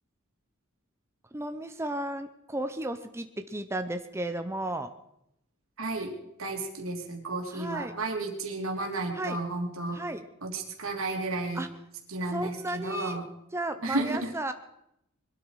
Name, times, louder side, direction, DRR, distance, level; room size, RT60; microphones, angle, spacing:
voice 1, 1.3-4.9 7.5-7.9 9.2-9.4 9.9-10.3 11.5-11.7 12.3-13.2 13.5-14.5, right 1 dB, 15° right, 8 dB, 0.7 m, -34 dB
voice 2, 5.8-6.1 6.4-10.0 10.4-11.6 12.1-13.2 13.8-14.3, right 2 dB, 85° right, 3 dB, 2.8 m, -32 dB
22.0 x 12.5 x 4.8 m, 0.79 s
head